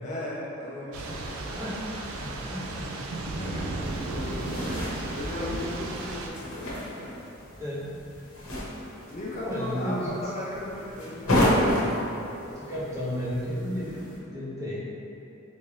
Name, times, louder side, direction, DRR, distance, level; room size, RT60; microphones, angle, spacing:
voice 1, 0.0-1.5 3.3-7.2 9.1-12.0, left 1 dB, 35° left, -6 dB, 0.4 m, -37 dB
Thunder / Rain, 0.9-6.3, right 2 dB, 85° right, 0.4 m, -34 dB
voice 2, 1.4-1.8 2.1-2.9 7.5-7.9 9.3-10.2 12.4-14.8, equal, 15° right, -9 dB, 0.7 m, -33 dB
sound 1, 3.8-14.2, left 1 dB, 80° left, 0.9 m, -31 dB
3.4 x 2.7 x 3.2 m, 2.9 s
head